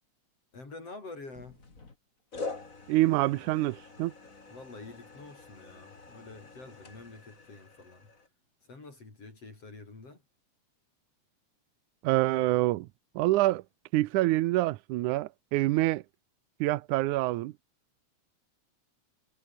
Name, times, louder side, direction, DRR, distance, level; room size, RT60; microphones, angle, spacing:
voice 1, 0.5-1.6 4.5-8.1 8.6-10.2, left 3 dB, 50° left, 6.9 m, -47 dB
sound 1, 1.3-2.0 2.3-8.3, left 3 dB, 25° left, 3.3 m, -45 dB
voice 2, 2.9-4.1 12.0-12.9 13.2-13.6 13.9-16.0 16.6-17.5, right 17 dB, 85° right, 2.2 m, -26 dB
omnidirectional pair, 3.5 m